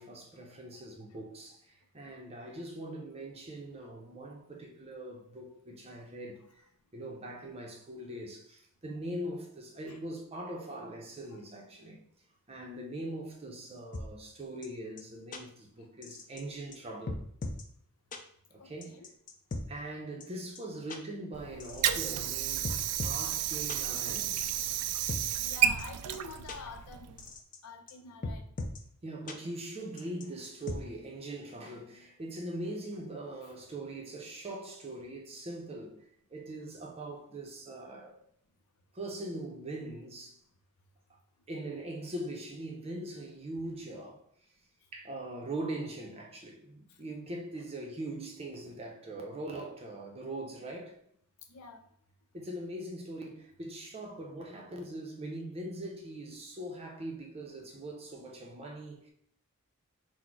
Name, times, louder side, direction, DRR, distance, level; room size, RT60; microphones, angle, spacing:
voice 1, 0.0-6.6 6.9-12.0 12.5-17.2 18.5-19.0 19.7-22.8 23.0-24.4 29.0-36.0 36.3-38.2 38.9-40.4 41.1-41.2 41.5-44.2 44.9-51.0 52.3-59.1, right 1 dB, 25° right, 0.6 m, -41 dB
sound 1, 13.9-14.0 14.6-14.7 15.0-15.1 15.3-15.4 16.0-16.4 16.7-16.8 17.1-17.6 18.1-18.2 18.8-19.6 20.2-20.3 20.6-20.7 20.9-21.0 21.6-22.3 22.6-23.2 23.7-23.8 24.4-25.2 25.8-25.9 26.1-26.2 26.5-26.6 27.2-27.6 27.9-28.0 28.2-28.8 29.3-29.4 30.0-30.8, left 2 dB, 35° left, 0.5 m, -38 dB
voice 2, 18.6-19.1 25.4-27.2 27.6-28.5 46.9-47.0 51.5-51.8, left 3 dB, 85° left, 0.6 m, -47 dB
Water / Sink (filling or washing), 21.3-27.3, right 10 dB, 90° right, 0.3 m, -32 dB
4.0 x 2.1 x 4.5 m
head